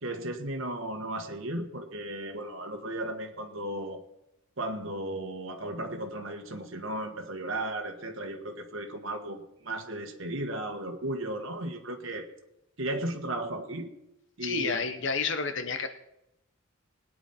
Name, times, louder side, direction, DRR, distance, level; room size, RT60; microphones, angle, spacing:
voice 1, 0.0-4.0 4.6-12.3 12.8-13.9 14.4-14.8, right 1 dB, 65° right, 4 dB, 1.5 m, -35 dB
voice 2, 14.4-15.9, left 5 dB, 60° left, 9 dB, 1.0 m, -30 dB
20.0 x 9.3 x 4.3 m, 0.85 s
head